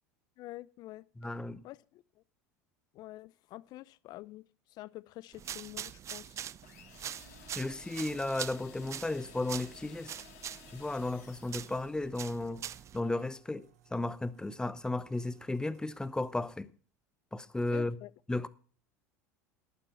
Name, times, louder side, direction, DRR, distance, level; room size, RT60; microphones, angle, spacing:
voice 1, 0.4-1.0 1.6-2.0 2.9-4.4 4.7-6.5 17.7-18.1, left 17 dB, 50° left, 0.6 m, -47 dB
voice 2, 1.2-1.6 7.6-10.1 10.7-12.7 12.9-16.7 17.3-18.0 18.3-18.5, left 2 dB, 10° left, 0.8 m, -34 dB
sound 1, 5.3-13.0, right 10 dB, 35° right, 0.5 m, -44 dB
sound 2, 6.6-12.2, left 8 dB, 70° left, 3.1 m, -55 dB
sound 3, 11.2-16.6, right 10 dB, 80° right, 2.0 m, -64 dB
11.5 x 9.2 x 5.8 m
hypercardioid pair, 85°, 9 cm